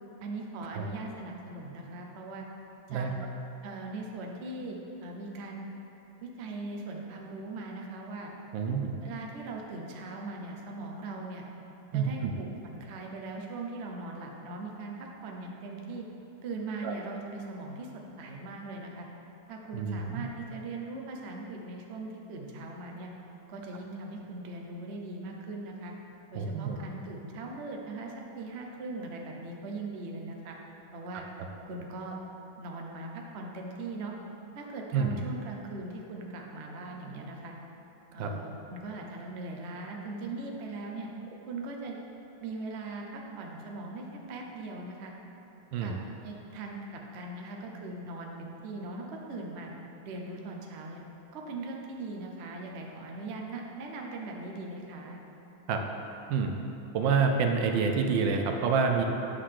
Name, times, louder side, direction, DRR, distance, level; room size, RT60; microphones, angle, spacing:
voice 1, 0.2-2.5 2.9-3.1 3.6-5.7 6.2-8.3 9.0-11.4 11.9-16.1 16.4-17.9 18.2-19.1 19.5-23.1 23.5-25.9 26.3-30.6 30.9-31.3 31.7-32.2 32.6-34.1 34.5-37.5 38.1-41.1 41.5-42.0 42.4-45.1 45.8-45.9 46.2-49.7 50.0-51.0 51.3-55.2, right 2 dB, 60° right, 0 dB, 0.7 m, -40 dB
voice 2, 8.5-8.9 11.9-12.3 16.8-16.9 19.7-20.2 26.3-26.8 34.9-35.1 38.2-38.3 45.7-46.0 55.7-55.8 56.3-56.5 56.9-59.0, right 5 dB, 75° right, 4 dB, 1.3 m, -27 dB
8.5 x 3.8 x 6.4 m, 3.0 s
omnidirectional pair, 2.2 m